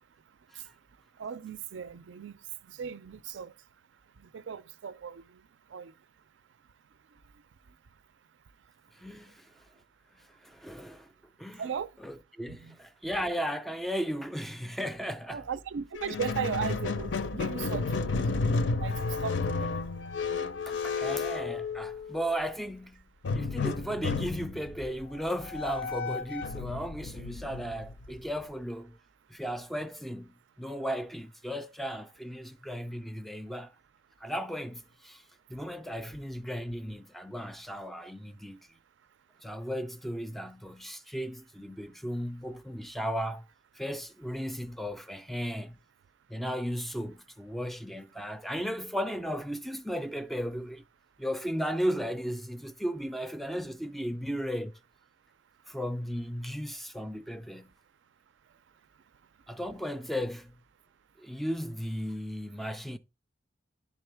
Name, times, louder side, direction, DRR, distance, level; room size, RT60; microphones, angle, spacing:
voice 1, 1.2-2.4 2.7-3.5 4.2-5.2 5.7-5.9 11.6-11.9 12.5-12.8 15.3-18.1 18.8-19.7, right 7 dB, 80° right, 0.4 m, -37 dB
voice 2, 9.0-9.5 10.4-11.1 11.4-11.6 12.0-15.5 20.7-23.0 23.3-29.0 29.3-33.7 34.2-35.2 35.5-38.6 39.4-43.5 43.7-45.8 46.3-50.8 51.2-54.7 55.7-57.7 59.5-60.6 61.2-63.0, equal, ahead, 0.3 m, -35 dB
Squeak, 16.0-22.3 23.2-28.4, left 4 dB, 75° left, 0.5 m, -32 dB
10.5 x 3.6 x 3.3 m
head